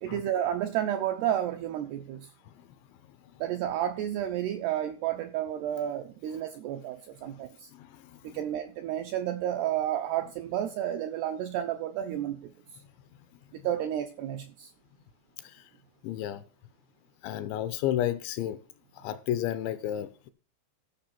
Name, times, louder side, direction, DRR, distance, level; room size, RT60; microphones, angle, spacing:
voice 1, 0.0-2.3 3.4-7.7 8.2-12.5 13.6-14.7, right 11 dB, 80° right, 2.3 m, -31 dB
voice 2, 7.7-8.4 15.4-15.6 16.0-16.4 17.2-18.6 19.0-20.3, left 12 dB, 80° left, 2.8 m, -32 dB
14.5 x 6.0 x 5.9 m
omnidirectional pair, 5.7 m